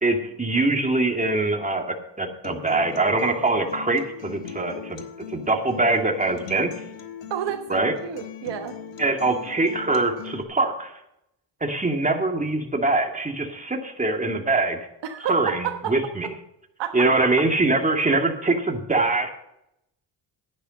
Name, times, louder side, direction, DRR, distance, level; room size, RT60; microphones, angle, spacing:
voice 1, 0.0-5.0 5.3-6.7 7.7-7.9 9.0-11.0 11.6-14.8 15.3-16.3 16.9-19.3, right 2 dB, 20° right, 3 dB, 2.1 m, -23 dB
Acoustic guitar, 2.4-10.4, left 8 dB, 80° left, 1.3 m, -40 dB
voice 2, 7.3-8.8 15.0-15.9 16.8-17.1, right 10 dB, 75° right, 6 dB, 1.2 m, -30 dB
11.0 x 10.0 x 5.3 m, 0.80 s
cardioid pair, 80°, 43 cm